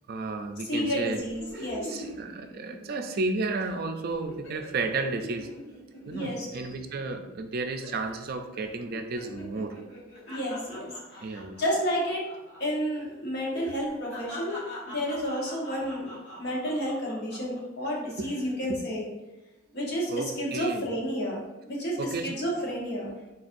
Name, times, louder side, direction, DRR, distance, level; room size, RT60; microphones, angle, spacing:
voice 1, 0.1-1.2 1.5-5.5 6.1-9.8 11.2-11.6 18.2-18.3 18.7-18.8 20.1-20.9 22.0-22.3, right 3 dB, 50° right, 6 dB, 0.4 m, -32 dB
sound 1, 0.7-3.2 3.5-3.8 4.1-7.5 7.8-8.2 8.5-12.6 12.9-13.0 13.5-17.6 18.1-18.5, equal, 85° left, 1.4 m, -43 dB
voice 2, 0.7-1.9 6.1-6.6 10.3-12.2 12.6-19.1 19.7-23.1, equal, 55° left, -3 dB, 1.1 m, -31 dB
4.1 x 3.9 x 2.5 m, 1.0 s
head